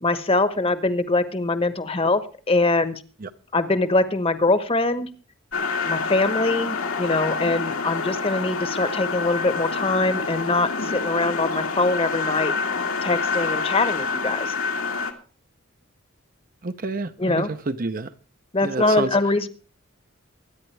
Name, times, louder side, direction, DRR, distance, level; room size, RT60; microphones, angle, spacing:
voice 1, 0.0-2.2 2.5-3.0 3.5-5.1 5.9-12.5 13.0-14.5 17.2-17.5 18.5-19.5, left 2 dB, 25° left, 12 dB, 1.1 m, -23 dB
sound 1, 5.5-15.1, left 4 dB, 75° left, 1.9 m, -27 dB
voice 2, 16.6-18.1 18.6-19.1, right 3 dB, 40° right, 10 dB, 0.7 m, -29 dB
23.5 x 9.7 x 3.3 m, 0.37 s
head